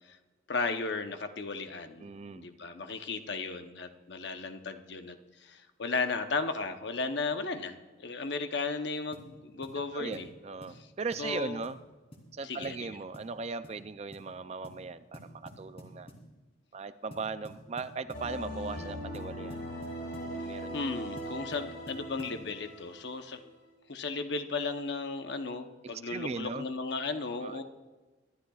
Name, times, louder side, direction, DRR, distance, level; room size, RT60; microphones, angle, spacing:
voice 1, 0.5-2.1 2.4-5.1 5.4-10.3 11.2-11.6 12.4-12.9 20.7-23.4 23.9-27.6, left 4 dB, 60° left, 7 dB, 0.8 m, -35 dB
voice 2, 2.0-2.5 9.9-11.8 12.3-16.1 16.7-19.6 20.2-20.8 26.1-26.6 27.4-27.6, right 4 dB, 30° right, 12 dB, 0.4 m, -38 dB
sound 1, 9.1-9.3 9.6-9.8 10.1-10.3 10.6-10.8 11.1-11.3 11.6-11.8 12.1-12.3 12.6-12.8 13.1-13.4 13.6-13.8 14.1-14.3 14.6-14.8 15.1-16.3 17.1-18.3 19.1-20.3 21.2-22.4, equal, 30° left, 2.7 m, -50 dB
sound 2, 18.1-23.5, equal, 90° left, 4.7 m, -40 dB
24.0 x 12.0 x 2.4 m, 1.3 s
head